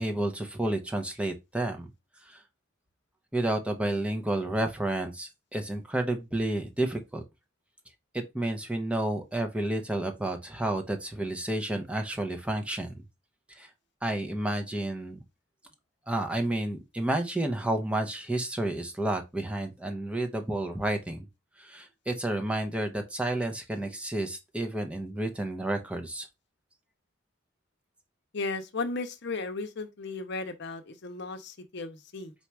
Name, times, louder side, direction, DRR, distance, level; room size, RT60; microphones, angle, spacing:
voice 1, 0.0-1.9 2.3-2.4 3.3-7.2 8.1-12.9 13.5-13.7 14.0-15.2 16.1-21.3 21.6-26.3, right 1 dB, 5° right, 0.6 m, -31 dB
voice 2, 28.3-32.3, left 3 dB, 60° left, 0.7 m, -35 dB
4.2 x 2.4 x 4.5 m
head